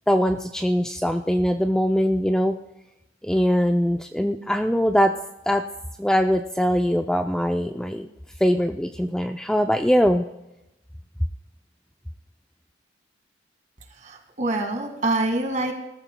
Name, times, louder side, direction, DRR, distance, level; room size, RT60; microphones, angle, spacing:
voice 1, 0.1-2.5 3.2-5.1 5.5-5.6 6.0-8.1 8.4-10.3, equal, 5° left, 5 dB, 0.4 m, -22 dB
voice 2, 14.0-15.7, right 2 dB, 40° right, 4 dB, 1.9 m, -25 dB
19.5 x 13.0 x 2.2 m, 0.92 s
head